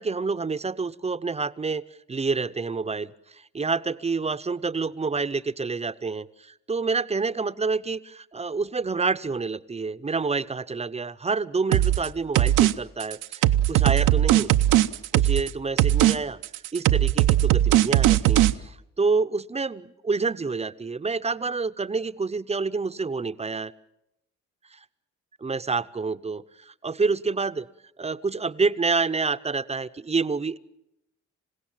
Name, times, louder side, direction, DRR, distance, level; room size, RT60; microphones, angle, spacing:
voice 1, 0.0-1.8 2.1-14.5 15.1-16.4 16.7-23.7 24.7-24.8 25.4-27.7 28.0-30.6, right 4 dB, 20° right, 14 dB, 0.7 m, -28 dB
sound 1, 11.7-12.1 12.4-12.7 13.0-15.5 15.8-16.2 16.4-18.5, right 13 dB, 90° right, 0.8 m, -19 dB
27.5 x 16.5 x 7.5 m, 0.86 s
cardioid pair, 90°, 30 cm